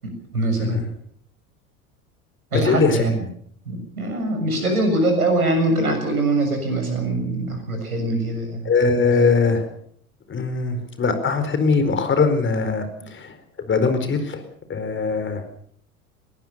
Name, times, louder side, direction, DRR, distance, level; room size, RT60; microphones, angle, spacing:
voice 1, 0.0-0.9 2.5-3.2 3.7-8.7, right 2 dB, 80° right, 5 dB, 7.0 m, -23 dB
voice 2, 2.6-3.1 8.6-9.7 10.3-13.3 13.7-14.4 14.7-15.4, left 4 dB, 25° left, 9 dB, 4.5 m, -21 dB
22.0 x 18.5 x 6.8 m, 0.64 s
figure-of-eight pair, 75°, 43 cm